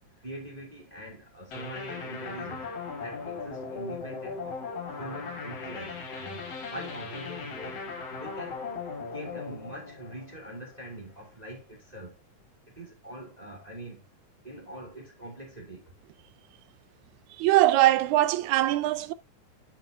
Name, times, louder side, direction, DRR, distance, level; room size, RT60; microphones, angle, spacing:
voice 1, 0.2-2.7 3.0-4.7 5.0-6.4 6.7-7.9 8.2-8.7 9.0-12.1 12.8-14.0 14.4-15.9, right 1 dB, 15° right, 2.0 m, -43 dB
sound 1, 1.5-10.9, left 4 dB, 55° left, 2.7 m, -38 dB
voice 2, 17.3-19.1, right 15 dB, 80° right, 1.8 m, -22 dB
10.0 x 5.6 x 2.6 m
omnidirectional pair, 3.5 m